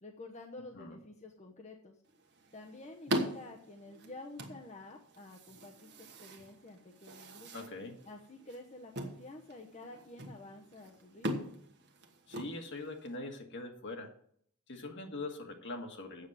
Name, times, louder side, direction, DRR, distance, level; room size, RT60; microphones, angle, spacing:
voice 1, 0.0-2.0 2.5-7.7 8.1-11.5, left 2 dB, 30° left, 1 dB, 0.9 m, -50 dB
sound 1, 2.1-13.1, equal, 50° right, 1.3 m, -42 dB
voice 2, 7.5-8.0 12.3-14.1 14.7-16.3, left 2 dB, 55° left, 4 dB, 1.7 m, -42 dB
8.3 x 7.3 x 7.5 m, 0.65 s
head